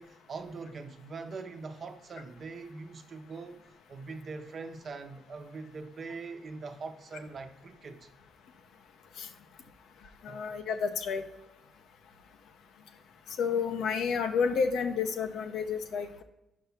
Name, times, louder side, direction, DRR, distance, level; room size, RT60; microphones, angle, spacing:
voice 1, 0.0-3.6 3.9-8.1 10.3-10.4, right 4 dB, 50° right, 0.9 m, -42 dB
voice 2, 10.2-11.2 13.4-16.2, left 6 dB, 75° left, 0.8 m, -30 dB
5.6 x 5.3 x 5.7 m
cardioid pair, 90°, 0 cm